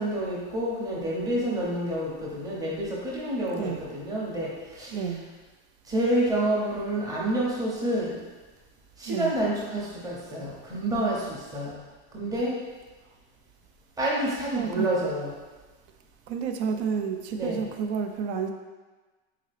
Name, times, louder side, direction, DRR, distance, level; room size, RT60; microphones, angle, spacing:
voice 1, 0.0-4.5 4.8-4.9 5.9-8.2 9.0-11.8 12.1-12.5 14.0-15.3 17.3-17.6, right 1 dB, 10° right, -5 dB, 0.6 m, -28 dB
voice 2, 3.5-3.8 4.9-5.2 9.1-9.4 14.5-14.9 16.3-18.5, right 6 dB, 90° right, 4 dB, 0.5 m, -30 dB
3.7 x 2.8 x 3.2 m, 1.3 s
supercardioid pair, 150°, 34 cm